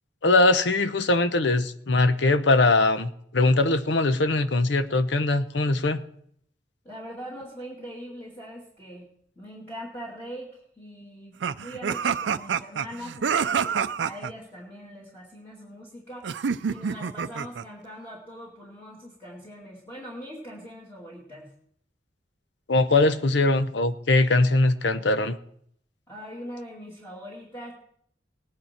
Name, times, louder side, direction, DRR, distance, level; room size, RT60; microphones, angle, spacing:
voice 1, 0.2-6.0 22.7-25.4, left 2 dB, 80° left, 11 dB, 0.8 m, -21 dB
voice 2, 6.8-9.1 9.4-21.5 26.1-27.7, equal, 15° left, -4 dB, 2.3 m, -42 dB
sound 1, 11.4-14.3 16.2-17.7, right 6 dB, 85° right, 0.5 m, -27 dB
18.5 x 9.7 x 4.4 m, 0.67 s
head